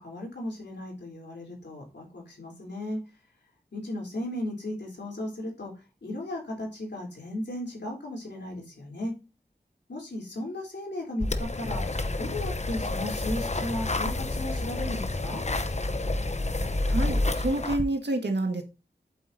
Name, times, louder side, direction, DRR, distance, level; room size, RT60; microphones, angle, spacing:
voice 1, 0.0-3.0 3.7-5.7 6.0-9.1 9.9-11.8 12.2-15.4, left 1 dB, 80° left, 3.8 m, -35 dB
sound 1, 11.2-17.8, left 2 dB, 40° left, 0.9 m, -29 dB
voice 2, 16.9-18.6, right 2 dB, 80° right, 1.9 m, -28 dB
8.2 x 7.9 x 2.8 m
wide cardioid pair, 60°, 18 cm